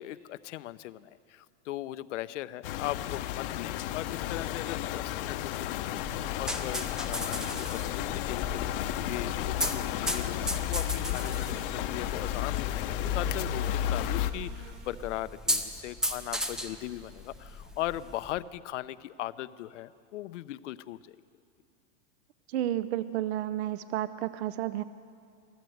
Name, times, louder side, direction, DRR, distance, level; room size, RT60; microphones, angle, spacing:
voice 1, 0.0-21.2, left 14 dB, 80° left, 15 dB, 0.7 m, -39 dB
sound 1, 2.6-14.3, left 12 dB, 50° left, 0.8 m, -33 dB
sound 2, 6.0-18.4, equal, ahead, 0.5 m, -37 dB
sound 3, 8.3-15.4, right 6 dB, 80° right, 3.1 m, -51 dB
voice 2, 22.5-24.8, right 13 dB, 60° right, 14 dB, 0.6 m, -31 dB
24.0 x 15.5 x 7.8 m, 2.4 s
supercardioid pair, 165°, 36 cm